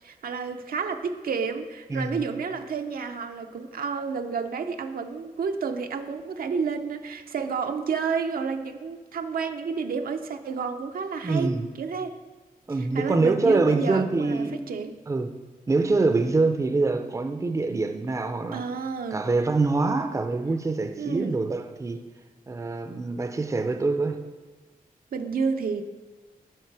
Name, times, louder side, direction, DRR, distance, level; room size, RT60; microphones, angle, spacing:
voice 1, 0.0-12.1 12.8-14.9 18.5-19.2 21.0-21.3 25.1-25.8, right 5 dB, 75° right, 6 dB, 0.7 m, -30 dB
voice 2, 1.9-2.3 11.2-11.7 12.7-14.6 15.1-15.3 15.7-18.6 19.1-22.0 22.5-24.2, right 3 dB, 20° right, 6 dB, 0.6 m, -25 dB
9.0 x 6.4 x 4.8 m, 1.4 s
wide cardioid pair, 125°, 15 cm